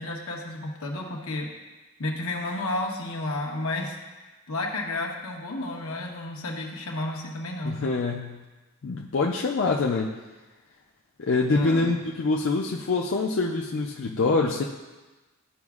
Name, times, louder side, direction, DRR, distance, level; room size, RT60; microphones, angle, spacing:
voice 1, 0.0-1.5 2.0-7.8 11.5-11.9, left 2 dB, 80° left, 0 dB, 1.1 m, -32 dB
voice 2, 7.6-8.4 8.8-10.1 11.2-14.6, left 3 dB, 60° left, -1 dB, 0.5 m, -25 dB
12.5 x 5.1 x 2.4 m, 1.2 s
head